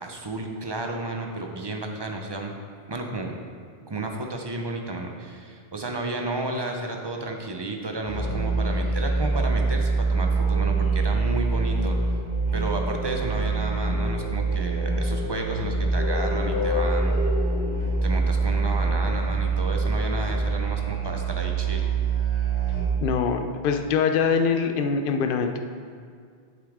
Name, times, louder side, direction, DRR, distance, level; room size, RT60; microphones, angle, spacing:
voice 1, 0.0-2.6 2.9-3.4 3.9-12.0 12.5-17.2 18.0-21.9, right 2 dB, 30° right, 2 dB, 0.7 m, -32 dB
Musical instrument, 8.0-23.1, right 3 dB, 80° left, 2.6 m, -25 dB
voice 2, 23.0-25.6, left 6 dB, 65° left, 6 dB, 0.7 m, -23 dB
8.0 x 7.4 x 3.6 m, 2.1 s
omnidirectional pair, 1.0 m